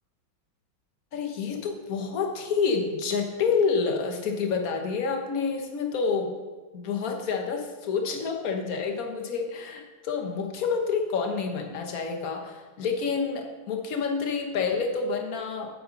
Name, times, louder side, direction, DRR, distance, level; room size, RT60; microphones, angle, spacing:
voice 1, 1.1-6.4 6.7-15.7, left 5 dB, 50° left, 3 dB, 1.5 m, -28 dB
9.2 x 7.8 x 5.3 m, 1.3 s
omnidirectional pair, 2.2 m